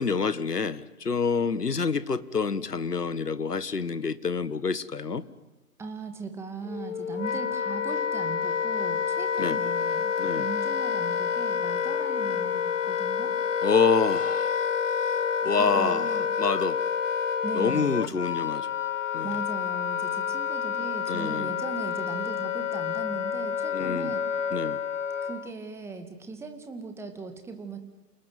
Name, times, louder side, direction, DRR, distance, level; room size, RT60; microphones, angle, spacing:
voice 1, 0.0-5.2 9.4-9.6 10.2-10.5 13.6-14.6 15.4-16.1 16.4-16.8 17.6-18.7 19.1-19.3 21.1-21.5 23.7-24.1 24.5-24.8, left 5 dB, 75° left, 16 dB, 1.8 m, -27 dB
voice 2, 5.8-13.3 15.5-16.3 17.4-18.1 19.2-24.2 25.2-27.8, right 4 dB, 5° right, 6 dB, 2.1 m, -39 dB
Wind instrument woodwind instrument, 6.7-25.5, left 7 dB, 50° left, 1.6 m, -28 dB
29.0 x 19.5 x 9.4 m, 1.1 s
figure-of-eight pair, 135°, 47 cm